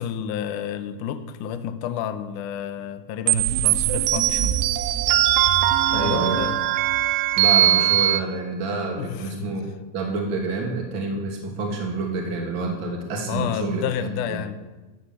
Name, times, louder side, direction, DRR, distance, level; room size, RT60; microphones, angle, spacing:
voice 1, 0.0-4.6 5.9-6.6 8.9-9.5 13.3-14.6, left 8 dB, 85° left, 10 dB, 1.8 m, -30 dB
sound 1, 3.3-8.2, right 13 dB, 80° right, 2.6 m, -20 dB
voice 2, 5.9-6.4 7.4-9.6 9.9-14.4, right 3 dB, 35° right, 1 dB, 2.6 m, -28 dB
15.5 x 9.7 x 7.1 m, 1.2 s
omnidirectional pair, 4.9 m